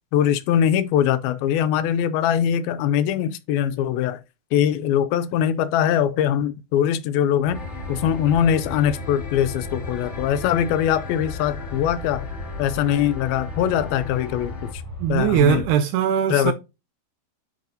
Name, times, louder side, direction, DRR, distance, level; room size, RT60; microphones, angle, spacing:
voice 1, 0.1-4.2 4.5-7.6 7.9-12.3 12.6-14.7 15.1-15.6 16.3-16.5, left 10 dB, 85° left, 2.4 m, -22 dB
Aircraft, 7.4-15.7, left 1 dB, 5° right, 3.1 m, -36 dB
sound 1, 7.5-14.7, left 5 dB, 40° left, 0.9 m, -38 dB
voice 2, 15.0-16.5, right 9 dB, 80° right, 1.8 m, -20 dB
9.2 x 4.7 x 2.6 m
omnidirectional pair, 4.4 m